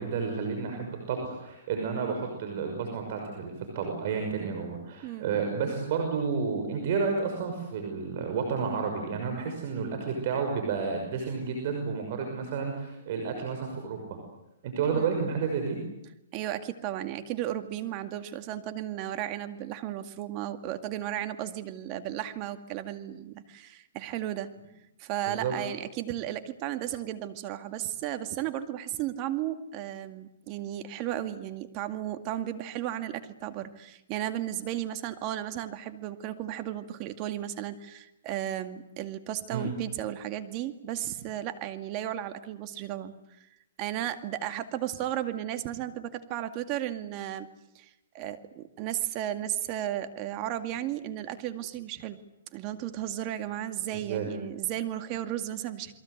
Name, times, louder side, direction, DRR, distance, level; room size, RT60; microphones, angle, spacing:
voice 1, 0.0-14.2 14.6-15.8 25.3-25.5 39.5-39.7 53.9-54.3, right 5 dB, 50° right, 4 dB, 5.8 m, -31 dB
voice 2, 16.3-24.5 25.0-43.1 43.8-47.5 47.8-52.2 52.5-55.9, right 12 dB, 35° right, 9 dB, 2.2 m, -34 dB
29.0 x 22.5 x 8.1 m, 0.87 s
hypercardioid pair, 145°, 0 cm